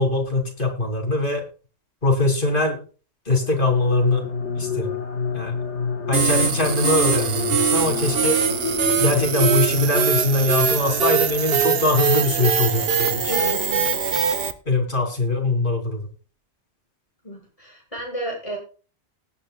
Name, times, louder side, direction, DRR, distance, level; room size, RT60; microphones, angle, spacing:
voice 1, 0.0-1.4 2.0-2.8 3.3-4.3 4.6-5.0 5.3-5.5 6.1-8.4 9.0-13.3 14.7-16.1, left 2 dB, 50° left, 2 dB, 3.4 m, -22 dB
sound 1, 3.4-10.3, left 6 dB, 85° left, 1.8 m, -29 dB
sound 2, 6.1-14.5, right 6 dB, 60° right, 1.2 m, -22 dB
voice 2, 13.3-14.0 17.2-18.6, equal, 30° left, -1 dB, 7.0 m, -32 dB
19.0 x 9.5 x 2.4 m, 0.36 s
omnidirectional pair, 1.2 m